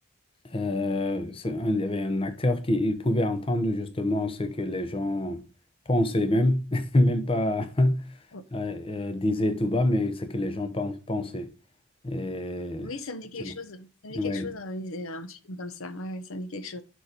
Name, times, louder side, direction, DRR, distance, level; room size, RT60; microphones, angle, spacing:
voice 1, 0.5-5.4 5.9-8.0 8.5-11.5 12.0-12.9 13.4-13.5 14.1-14.5, left 1 dB, 25° left, 0.7 m, -26 dB
voice 2, 12.8-16.8, left 2 dB, 70° left, 0.8 m, -37 dB
6.9 x 4.6 x 5.0 m
head